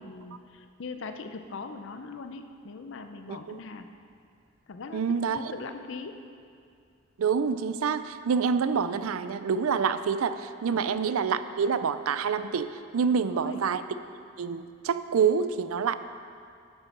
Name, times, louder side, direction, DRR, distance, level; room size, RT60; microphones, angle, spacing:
voice 1, 0.0-3.9 4.7-6.1 10.7-10.8 13.1-13.6, left 4 dB, 60° left, 7 dB, 0.5 m, -41 dB
voice 2, 3.3-3.6 4.9-5.4 7.2-13.8 14.4-15.9, right 6 dB, 80° right, 12 dB, 0.4 m, -27 dB
9.8 x 6.8 x 5.9 m, 2.4 s
head